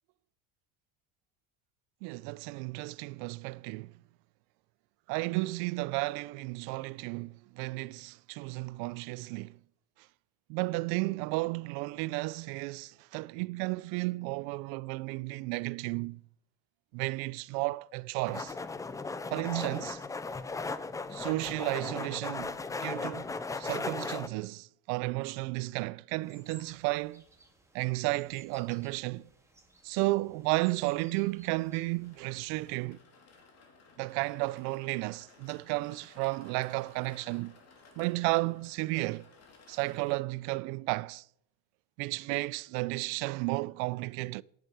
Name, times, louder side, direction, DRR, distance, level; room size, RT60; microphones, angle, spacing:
voice 1, 2.0-3.9 5.1-9.5 10.5-16.2 16.9-18.5 19.3-20.0 21.1-27.2 27.7-29.3 29.8-33.0 34.0-37.5 38.0-39.3 39.7-41.2 42.0-44.4, right 23 dB, 70° right, 0.5 m, -33 dB
sound 1, 18.3-24.3, left 3 dB, 10° left, 0.4 m, -37 dB
sound 2, 26.2-32.9, right 2 dB, 5° right, 2.2 m, -60 dB
sound 3, 31.1-40.2, left 4 dB, 40° left, 3.1 m, -58 dB
11.0 x 8.1 x 6.0 m
supercardioid pair, 125°, 39 cm